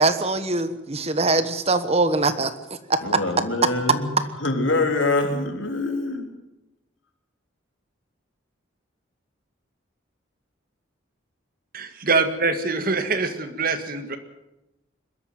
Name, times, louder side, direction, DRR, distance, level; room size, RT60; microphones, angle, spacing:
voice 1, 0.0-3.2 3.6-3.7, right 3 dB, 30° right, 11 dB, 1.2 m, -22 dB
voice 2, 3.0-4.1 4.4-6.3, left 2 dB, 75° left, 4 dB, 3.4 m, -24 dB
voice 3, 11.7-14.2, right 4 dB, 45° right, 9 dB, 1.8 m, -24 dB
21.5 x 13.0 x 9.3 m, 0.93 s
head